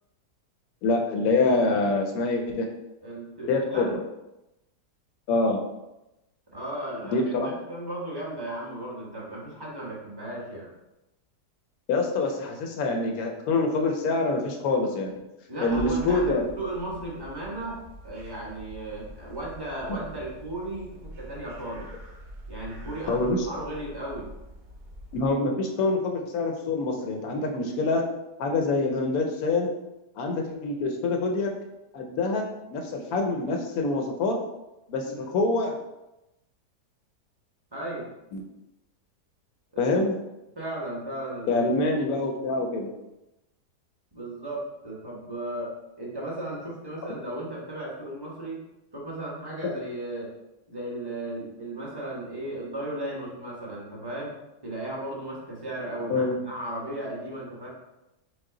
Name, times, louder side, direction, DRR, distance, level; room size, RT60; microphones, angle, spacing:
voice 1, 0.8-2.7 3.5-4.0 5.3-5.6 7.1-7.5 11.9-15.1 15.6-16.4 23.1-23.5 25.1-28.0 28.4-29.7 30.2-31.5 31.9-34.4 34.9-35.7 38.3-38.4 39.8-40.1 41.5-42.9 49.6-49.7 56.1-56.3, left 3 dB, 70° left, 3 dB, 1.0 m, -25 dB
voice 2, 3.0-3.9 6.5-10.7 15.5-21.9 22.5-24.3 35.0-35.3 37.7-38.1 39.7-40.2 40.5-41.9 44.1-45.7 46.0-48.6 48.9-50.3 50.7-54.3 54.6-57.7, right 1 dB, 15° right, -5 dB, 1.0 m, -35 dB
sound 1, 15.6-25.3, equal, 70° right, 1.5 m, -44 dB
6.2 x 2.1 x 3.8 m, 0.95 s
omnidirectional pair, 1.8 m